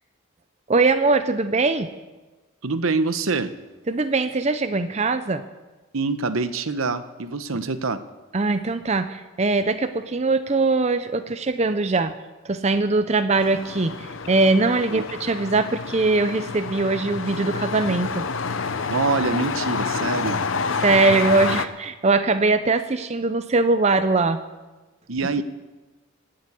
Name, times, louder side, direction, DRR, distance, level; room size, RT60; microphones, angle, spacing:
voice 1, 0.7-1.9 3.9-5.5 7.5-7.6 8.3-12.1 12.4-18.3 20.8-24.4, right 3 dB, 30° right, 10 dB, 0.6 m, -21 dB
voice 2, 2.6-3.5 5.9-8.0 14.9-15.0 18.9-20.4 25.1-25.4, right 3 dB, 80° right, 11 dB, 0.9 m, -25 dB
sound 1, 13.4-21.6, left 5 dB, 70° left, 0.8 m, -28 dB
17.5 x 7.7 x 8.5 m, 1.2 s
head